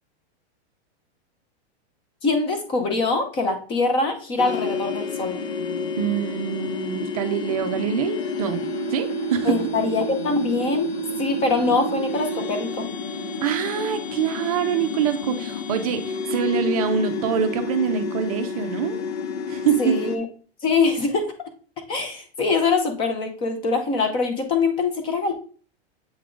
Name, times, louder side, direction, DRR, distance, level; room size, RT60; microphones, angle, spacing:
voice 1, 2.2-5.4 9.4-10.9 11.2-12.9 19.8-20.2 20.6-21.3 21.9-25.3, left 3 dB, 15° left, 6 dB, 0.6 m, -23 dB
sound 1, 4.4-20.2, left 3 dB, 70° left, 1.4 m, -29 dB
voice 2, 6.0-8.6 8.9-9.6 13.4-19.0 19.5-20.0, right 8 dB, 35° right, 7 dB, 0.5 m, -25 dB
7.7 x 3.6 x 3.7 m, 0.40 s
supercardioid pair, 170°, 33 cm